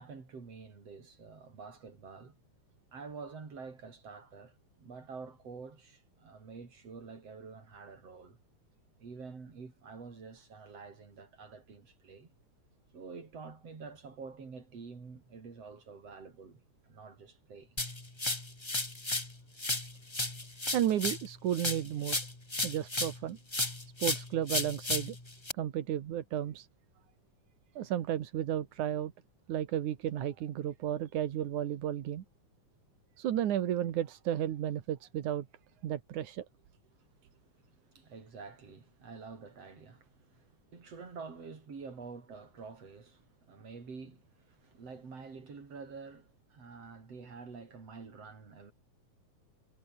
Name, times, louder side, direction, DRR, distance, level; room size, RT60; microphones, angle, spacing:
voice 1, 0.0-2.4 2.9-8.4 9.0-12.3 12.9-17.8 37.0-37.3 37.5-48.7, right 4 dB, 55° right, 5.3 m, -48 dB
sound 1, 17.8-19.3 19.6-23.2 23.5-25.5, left 2 dB, 15° left, 1.1 m, -34 dB
voice 2, 20.7-22.2 22.6-23.4 24.0-25.2 25.6-26.7 27.8-29.1 29.5-32.2 33.2-35.5 35.8-36.5, right 11 dB, 85° right, 3.0 m, -33 dB
omnidirectional pair, 3.4 m